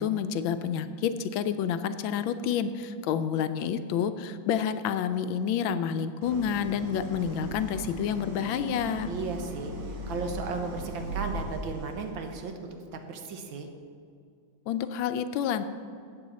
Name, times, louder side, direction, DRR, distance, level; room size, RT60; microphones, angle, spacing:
voice 1, 0.0-9.1 14.7-15.6, left 8 dB, 80° left, 11 dB, 1.3 m, -29 dB
Idling, 6.2-12.3, right 1 dB, 90° right, 2.3 m, -38 dB
voice 2, 9.0-13.7, right 4 dB, 75° right, 5 dB, 1.7 m, -35 dB
13.5 x 8.4 x 4.1 m, 2.3 s
omnidirectional pair, 2.2 m